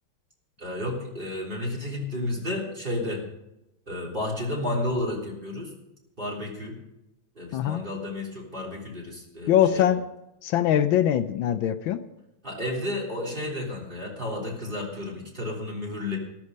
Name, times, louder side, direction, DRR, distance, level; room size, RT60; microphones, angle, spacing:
voice 1, 0.6-3.2 3.9-5.7 6.2-6.8 7.4-9.9 12.4-16.2, left 1 dB, 25° right, -2 dB, 3.6 m, -32 dB
voice 2, 7.5-7.8 9.5-10.0 10.4-12.0, left 10 dB, 80° left, 10 dB, 1.4 m, -22 dB
13.0 x 12.5 x 5.4 m, 0.89 s
omnidirectional pair, 2.2 m